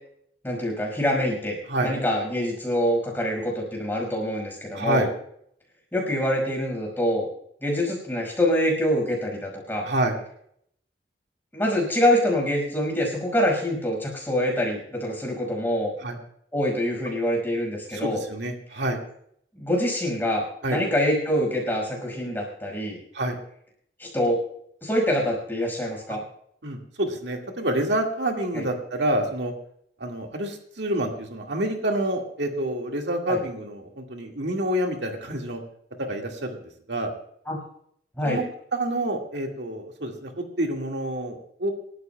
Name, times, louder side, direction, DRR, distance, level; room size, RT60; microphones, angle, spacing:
voice 1, 0.4-5.1 5.9-7.3 7.6-9.9 11.5-15.9 16.5-18.2 19.5-23.0 24.0-24.4 24.8-26.2 28.5-28.6 33.3-33.4 37.5-37.6 38.2-38.4, equal, 10° left, -1 dB, 5.2 m, -25 dB
voice 2, 4.7-5.1 9.8-10.2 16.0-16.2 17.9-19.0 20.6-20.8 23.1-23.4 26.6-29.5 30.0-35.6 36.0-37.1 38.2-38.4 38.7-41.7, right 1 dB, 80° right, 2 dB, 1.9 m, -28 dB
27.0 x 13.0 x 2.3 m, 0.69 s
head